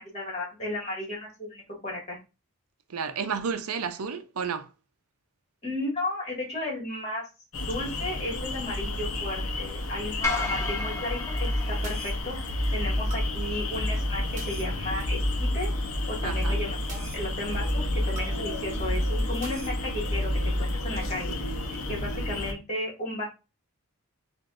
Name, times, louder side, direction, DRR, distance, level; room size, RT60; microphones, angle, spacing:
voice 1, 0.0-2.2 5.6-7.2 7.6-12.4 12.7-15.7 16.1-21.4 21.7-23.2, left 1 dB, 30° left, 2.0 m, -34 dB
voice 2, 2.9-4.7 16.2-16.6, right 6 dB, 90° right, 0.6 m, -31 dB
sound 1, 7.5-22.5, left 2 dB, 70° left, 0.8 m, -33 dB
sound 2, 10.2-12.6, left 3 dB, 15° left, 0.6 m, -33 dB
sound 3, 11.3-21.3, equal, 35° right, 1.0 m, -31 dB
7.6 x 2.6 x 2.5 m
head